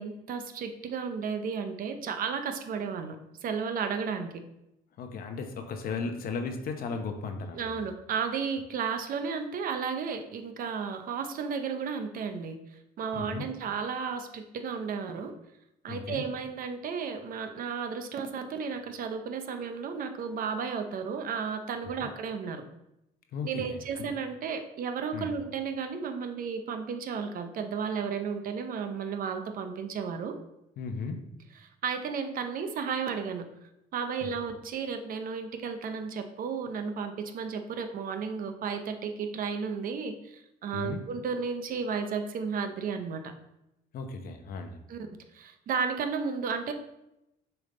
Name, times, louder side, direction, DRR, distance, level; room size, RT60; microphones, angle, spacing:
voice 1, 0.0-3.2 3.4-4.3 7.6-12.6 13.0-15.3 15.8-22.6 23.4-30.4 31.8-33.4 33.9-43.3 44.9-45.0 45.3-46.7, right 6 dB, 55° right, 7 dB, 0.7 m, -33 dB
voice 2, 5.0-7.7 13.1-13.5 15.9-16.2 22.0-22.1 23.3-24.1 25.1-25.3 30.8-31.3 34.2-34.3 40.7-41.0 43.9-44.8, left 4 dB, 60° left, 5 dB, 0.9 m, -36 dB
6.9 x 3.5 x 3.9 m, 0.88 s
cardioid pair, 110°, 17 cm